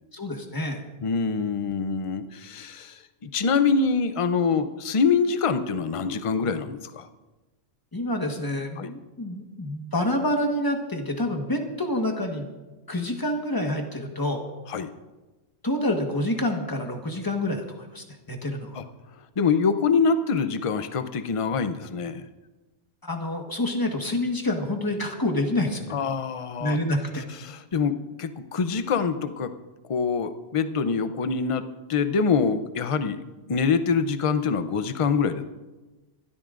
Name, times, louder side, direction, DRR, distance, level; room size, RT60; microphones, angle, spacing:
voice 1, 0.1-0.8 7.9-12.5 12.9-14.4 15.6-18.8 23.0-25.9 26.6-27.2, left 1 dB, 20° left, 3 dB, 1.3 m, -27 dB
voice 2, 1.0-7.1 8.8-8.9 14.7-14.9 18.7-18.8 19.4-22.3 25.9-26.8 27.4-29.5 29.9-33.2 33.5-35.4, left 5 dB, 35° left, 10 dB, 0.6 m, -25 dB
25.0 x 12.5 x 2.5 m, 1.2 s
omnidirectional pair, 1.2 m